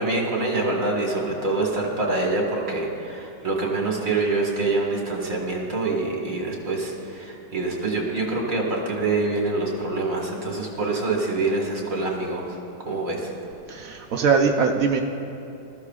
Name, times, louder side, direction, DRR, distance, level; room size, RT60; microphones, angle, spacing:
voice 1, 0.0-12.6 12.8-13.3, right 3 dB, 45° right, -1 dB, 2.0 m, -25 dB
voice 2, 13.7-15.0, right 5 dB, 65° right, 3 dB, 0.8 m, -21 dB
19.5 x 13.5 x 2.4 m, 2.9 s
omnidirectional pair, 2.1 m